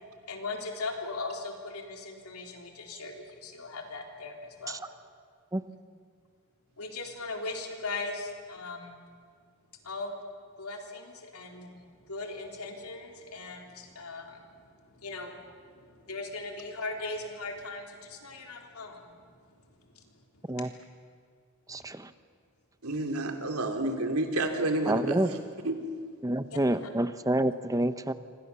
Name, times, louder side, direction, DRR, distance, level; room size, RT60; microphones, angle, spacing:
voice 1, 0.3-4.8 6.8-9.0 9.8-10.1 10.6-19.6 19.9-20.7 21.7-21.9 26.5-26.9, left 3 dB, 85° left, 2 dB, 3.7 m, -39 dB
voice 2, 21.7-22.1 24.9-25.3 26.2-28.1, right 1 dB, 15° right, 12 dB, 0.8 m, -28 dB
voice 3, 22.8-25.4 25.6-25.8, right 2 dB, 80° right, 5 dB, 3.1 m, -30 dB
28.0 x 25.0 x 7.0 m, 2.1 s
head